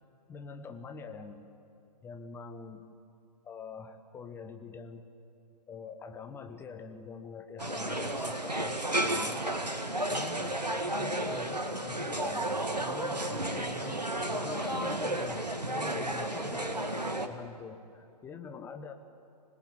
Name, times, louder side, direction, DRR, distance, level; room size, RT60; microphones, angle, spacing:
voice 1, 0.3-1.5 2.0-2.8 3.4-5.0 5.7-9.4 9.9-10.5 10.8-12.5 12.8-14.0 14.3-18.9, left 5 dB, 10° left, 7 dB, 1.2 m, -44 dB
sound 1, 7.6-17.3, right 1 dB, 85° right, 1.8 m, -32 dB
25.5 x 18.5 x 8.9 m, 2.6 s
figure-of-eight pair, 125°, 21 cm